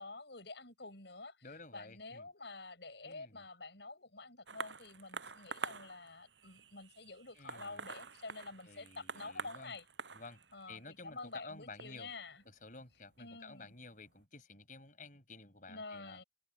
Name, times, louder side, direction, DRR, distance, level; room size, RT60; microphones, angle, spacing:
voice 1, 0.0-1.4 1.7-9.8 10.5-12.4 13.2-13.7 15.7-16.2, left 3 dB, 70° left, 6.8 m, -49 dB
voice 2, 1.4-2.3 3.0-3.4 7.3-7.8 8.7-9.7 10.1-12.1 12.5-16.2, left 3 dB, 45° left, 5.6 m, -53 dB
sound 1, 4.5-13.3 14.1-14.2, right 4 dB, 85° right, 8.0 m, -47 dB
head